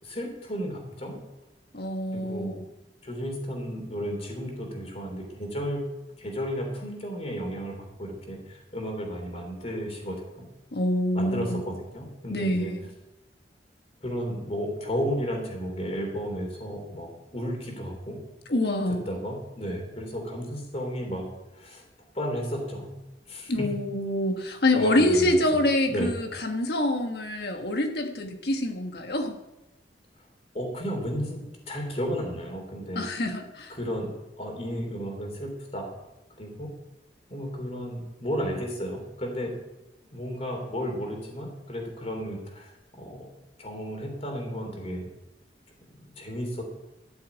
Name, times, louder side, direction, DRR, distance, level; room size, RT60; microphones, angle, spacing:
voice 1, 0.0-1.2 2.1-2.5 3.0-5.8 6.2-10.5 11.2-12.7 14.0-18.2 19.1-21.3 21.5-21.8 22.1-22.9 23.3-23.5 24.7-25.4 25.9-26.1 30.5-33.0 33.7-35.9 36.4-36.7 37.3-39.5 40.1-43.3 43.6-45.1 45.9-46.6, equal, 35° left, 2 dB, 3.5 m, -33 dB
voice 2, 1.7-2.6 10.7-11.6 12.3-12.9 18.5-19.0 23.5-29.4 32.9-33.7, left 1 dB, 60° left, 4 dB, 1.4 m, -26 dB
13.0 x 7.1 x 8.3 m, 0.98 s
head